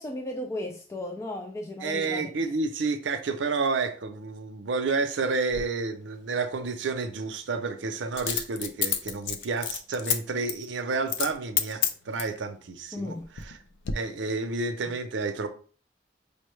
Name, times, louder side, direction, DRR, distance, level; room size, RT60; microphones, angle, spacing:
voice 1, 0.0-2.3 12.9-13.3, left 1 dB, 15° left, 0.3 m, -35 dB
voice 2, 1.8-13.6 13.9-15.5, right 4 dB, 85° right, 0.5 m, -30 dB
Coin (dropping), 5.5-5.7 8.2-10.2 10.5-10.7 11.1-11.3 11.6-12.4 13.0-13.5 13.8-13.9, left 8 dB, 85° left, 0.5 m, -28 dB
5.2 x 2.2 x 3.1 m
head